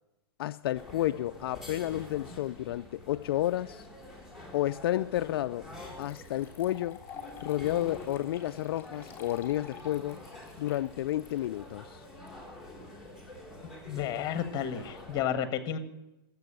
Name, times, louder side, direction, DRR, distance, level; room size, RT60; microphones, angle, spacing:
voice 1, 0.4-3.9 4.5-5.7 6.0-7.0 7.4-10.2 10.6-12.0, left 14 dB, 70° left, 0.4 m, -31 dB
sound 1, 0.8-15.2, left 1 dB, 5° right, 3.0 m, -47 dB
sound 2, 5.3-5.4 6.0-12.3, left 8 dB, 15° left, 3.2 m, -49 dB
voice 2, 13.9-15.8, left 9 dB, 30° left, 1.4 m, -31 dB
13.5 x 7.5 x 9.0 m
hypercardioid pair, 130°, 13 cm